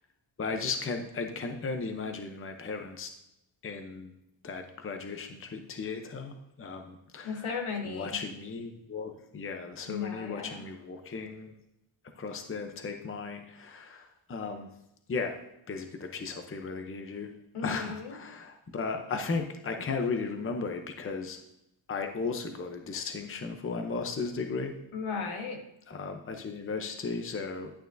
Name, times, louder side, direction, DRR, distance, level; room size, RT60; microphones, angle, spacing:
voice 1, 0.4-3.1 3.6-4.1 4.4-7.5 7.8-11.5 12.2-14.7 15.1-15.4 15.7-17.3 17.6-21.4 21.9-24.7 25.9-27.7, left 4 dB, 25° left, 5 dB, 0.7 m, -35 dB
voice 2, 7.2-8.2 9.8-10.6 17.5-18.1 24.9-25.6, left 5 dB, 75° left, 3 dB, 1.7 m, -35 dB
11.5 x 9.0 x 2.6 m, 0.83 s
wide cardioid pair, 150°, 50 cm